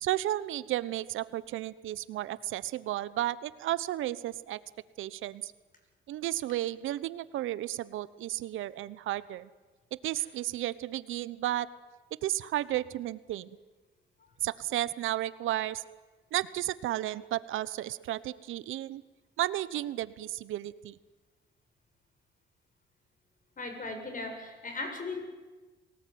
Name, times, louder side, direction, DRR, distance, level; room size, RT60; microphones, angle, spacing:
voice 1, 0.0-4.6 5.0-5.5 6.1-9.5 10.0-11.7 12.2-13.6 14.4-15.8 16.3-19.0 19.4-21.0, right 14 dB, 85° right, 17 dB, 1.0 m, -33 dB
voice 2, 23.6-25.2, left 3 dB, 45° left, 4 dB, 7.3 m, -37 dB
29.5 x 19.0 x 9.4 m, 1.3 s
cardioid pair, 90°, 20 cm